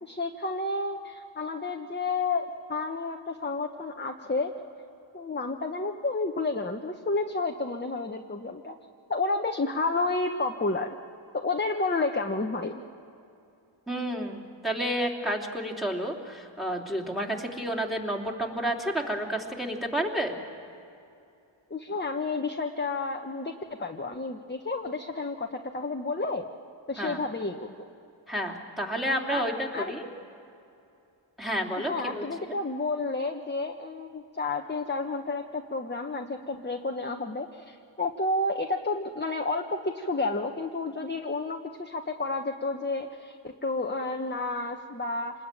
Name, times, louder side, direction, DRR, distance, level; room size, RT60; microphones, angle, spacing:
voice 1, 0.0-4.5 5.1-8.8 9.1-11.0 11.3-12.8 21.7-23.5 23.8-26.4 26.9-27.9 29.3-29.4 29.7-29.9 31.8-45.3, left 3 dB, 20° left, 3 dB, 1.2 m, -31 dB
voice 2, 13.9-20.4 27.0-27.2 28.3-30.1 31.4-32.5, equal, ahead, -1 dB, 3.2 m, -30 dB
27.0 x 20.5 x 9.2 m, 2.7 s
wide cardioid pair, 70°, 48 cm